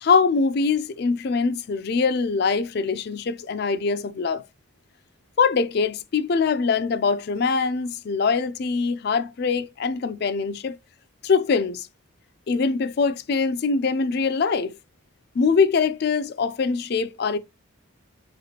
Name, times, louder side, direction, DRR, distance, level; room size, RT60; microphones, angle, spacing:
voice 1, 0.0-4.4 5.4-10.8 11.2-11.9 12.5-14.7 15.3-17.4, left 5 dB, 50° left, 0.4 m, -23 dB
5.8 x 3.1 x 2.8 m
head